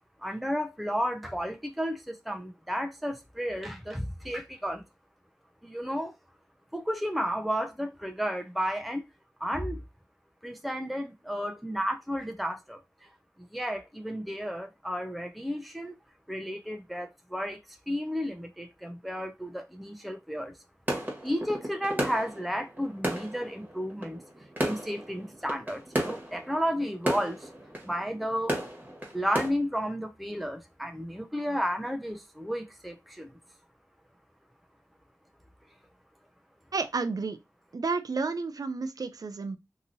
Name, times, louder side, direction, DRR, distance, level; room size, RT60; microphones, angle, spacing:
voice 1, 0.2-4.8 5.6-6.2 6.7-9.1 9.4-9.8 10.4-13.1 13.4-16.0 16.3-17.6 17.9-20.6 21.2-24.2 24.6-27.5 27.8-28.6 29.1-33.3, equal, ahead, 0.5 m, -32 dB
sound 1, 20.9-29.5, right 1 dB, 25° right, 1.3 m, -34 dB
voice 2, 36.7-37.4 37.7-39.6, right 4 dB, 70° right, 0.4 m, -31 dB
2.9 x 2.7 x 2.6 m
wide cardioid pair, 50°, 7 cm